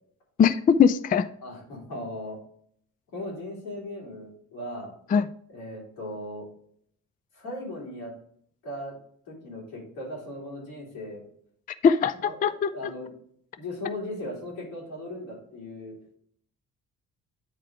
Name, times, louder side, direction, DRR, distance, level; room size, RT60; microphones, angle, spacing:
voice 1, 0.4-1.3 5.1-5.3 11.8-12.1 12.4-12.7, left 7 dB, 25° left, 12 dB, 0.4 m, -20 dB
voice 2, 1.4-2.4 3.1-4.9 5.5-6.5 7.3-8.1 8.6-9.0 9.3-11.3 12.2-13.1 13.6-16.0, left 1 dB, 85° left, -4 dB, 2.9 m, -37 dB
9.0 x 3.3 x 4.6 m, 0.63 s
supercardioid pair, 55°, 34 cm